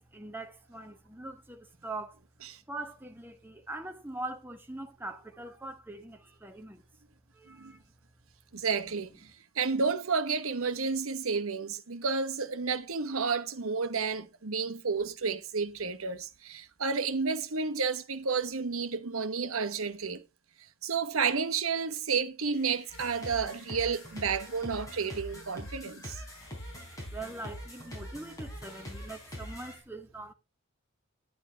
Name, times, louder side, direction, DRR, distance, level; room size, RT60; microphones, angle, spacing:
voice 1, 0.0-2.2 2.7-6.8 7.3-7.8 27.1-30.3, right 2 dB, 10° right, 1.0 m, -42 dB
voice 2, 8.5-20.2 20.8-26.2, right 5 dB, 75° right, 1.0 m, -31 dB
sound 1, 22.5-29.8, left 2 dB, 60° left, 5.0 m, -58 dB
sound 2, 22.9-29.8, equal, 15° left, 4.5 m, -43 dB
10.5 x 9.0 x 3.4 m
head